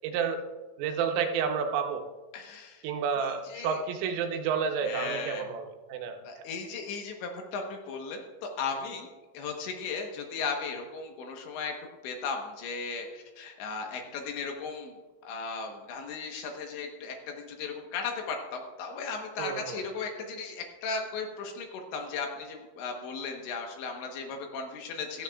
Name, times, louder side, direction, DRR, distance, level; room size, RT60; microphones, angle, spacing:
voice 1, 0.0-0.4 0.8-2.1 2.8-6.5 19.4-19.8, right 6 dB, 80° right, 4 dB, 3.5 m, -30 dB
voice 2, 2.3-2.8 3.2-3.8 4.8-5.5 6.2-9.1 9.3-11.7 12.0-14.9 15.2-25.2, left 4 dB, 70° left, 3 dB, 3.1 m, -36 dB
16.0 x 14.0 x 2.4 m, 1.2 s
omnidirectional pair, 5.8 m